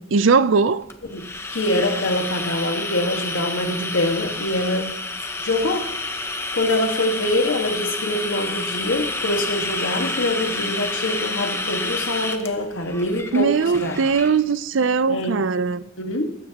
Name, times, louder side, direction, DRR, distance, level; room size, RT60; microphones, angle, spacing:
voice 1, 0.1-0.8 13.3-15.8, right 5 dB, 80° right, 0.5 m, -19 dB
sound 1, 0.9-14.3, left 2 dB, 15° left, 1.0 m, -29 dB
voice 2, 1.5-4.9 5.4-5.9 6.5-14.0 15.1-15.4 16.0-16.3, left 1 dB, 90° left, 1.7 m, -24 dB
21.0 x 15.5 x 2.9 m
head